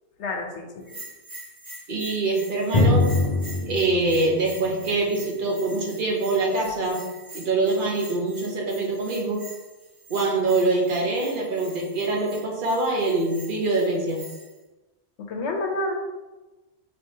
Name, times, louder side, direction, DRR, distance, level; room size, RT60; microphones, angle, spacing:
voice 1, 0.2-1.0 15.2-15.9, left 2 dB, 65° left, 2 dB, 1.0 m, -29 dB
Bell, 0.8-14.6, right 2 dB, 65° right, 1.7 m, -45 dB
voice 2, 1.9-3.1 3.6-7.0 7.3-9.4 10.1-14.2, right 2 dB, 45° right, -1 dB, 0.9 m, -24 dB
Drum, 2.7-6.3, left 2 dB, 40° left, 0.5 m, -24 dB
4.7 x 3.1 x 2.8 m, 1.1 s
omnidirectional pair, 1.3 m